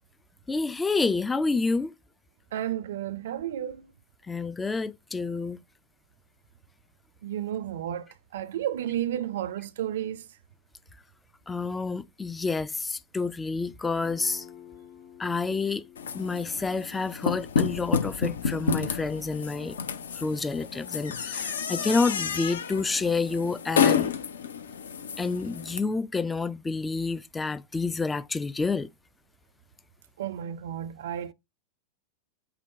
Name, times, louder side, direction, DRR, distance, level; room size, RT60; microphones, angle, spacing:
voice 1, 0.5-1.9 4.3-5.6 11.5-14.5 15.2-15.8 16.1-19.8 20.2-24.1 25.2-28.9, left 4 dB, 10° left, 0.3 m, -29 dB
voice 2, 2.5-3.9 7.2-8.1 8.3-10.2 30.2-31.3, right 11 dB, 60° right, 0.5 m, -32 dB
Guitar, 14.0-21.6, left 8 dB, 35° left, 1.3 m, -54 dB
sound 1, 16.0-25.8, left 6 dB, 65° left, 0.6 m, -30 dB
5.8 x 2.1 x 4.0 m
figure-of-eight pair, 90°, 0 cm